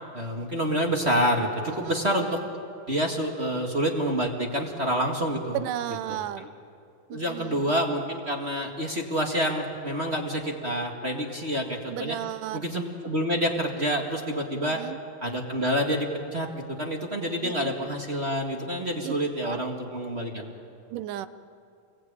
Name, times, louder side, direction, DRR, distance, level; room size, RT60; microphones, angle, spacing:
voice 1, 0.1-2.4 2.9-5.6 6.1-6.5 7.1-12.2 12.5-14.8 15.2-20.5, equal, 25° right, 1 dB, 1.4 m, -28 dB
voice 2, 1.7-2.0 5.5-6.5 7.1-7.7 11.9-12.7 14.6-15.0 17.4-17.7 19.0-19.2 19.4-19.6 20.9-21.3, right 13 dB, 75° right, 13 dB, 2.3 m, -34 dB
29.5 x 21.5 x 8.8 m, 2.4 s
omnidirectional pair, 3.9 m